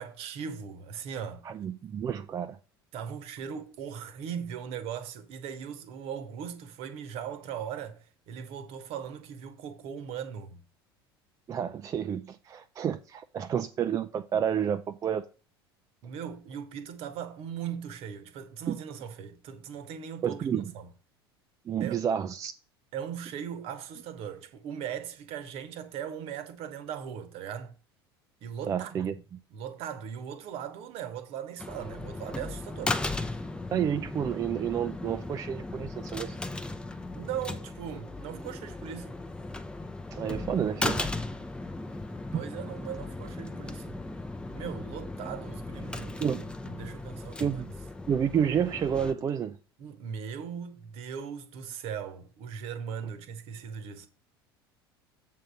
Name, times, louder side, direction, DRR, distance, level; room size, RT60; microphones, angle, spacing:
voice 1, 0.0-1.4 2.9-10.6 16.0-20.9 21.8-22.0 22.9-27.7 28.4-29.1 29.5-33.4 37.1-39.2 42.3-44.0 44.5-47.6 49.8-54.1, right 8 dB, 50° right, 1.1 m, -39 dB
voice 2, 1.4-2.6 11.5-15.2 18.7-18.8 20.2-20.6 21.7-22.5 28.7-29.4 33.7-36.4 40.1-41.1 42.3-42.4 46.2-46.4 47.4-47.7 48.1-49.6, right 8 dB, 25° right, 0.4 m, -30 dB
sound 1, 31.6-49.1, left 2 dB, 5° left, 0.7 m, -37 dB
7.6 x 3.8 x 6.1 m
figure-of-eight pair, 70°, 13 cm